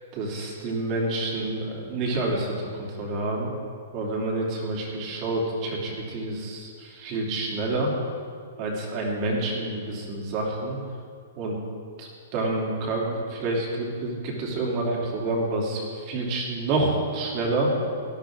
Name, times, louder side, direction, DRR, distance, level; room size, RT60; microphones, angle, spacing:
voice 1, 0.1-3.5 3.9-7.9 8.6-10.8 11.4-11.5 12.0-17.7, right 2 dB, 35° right, -2 dB, 3.2 m, -28 dB
18.5 x 11.5 x 3.9 m, 2.2 s
hypercardioid pair, 155°, 0 cm